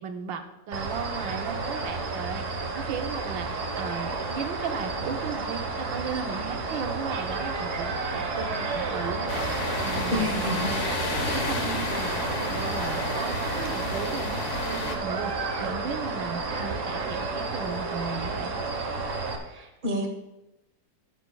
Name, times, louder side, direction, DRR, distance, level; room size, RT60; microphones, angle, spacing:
voice 1, 0.0-10.3 10.8-11.0 11.3-14.4 14.7-18.5, right 6 dB, 80° right, 5 dB, 1.5 m, -36 dB
sound 1, 0.7-19.4, right 3 dB, 45° right, 1.4 m, -31 dB
sound 2, 9.3-15.0, left 3 dB, 45° left, 1.3 m, -32 dB
voice 2, 10.1-10.8 19.4-20.1, left 1 dB, 30° right, 2 dB, 1.4 m, -29 dB
13.5 x 10.0 x 2.3 m, 0.94 s
omnidirectional pair, 2.0 m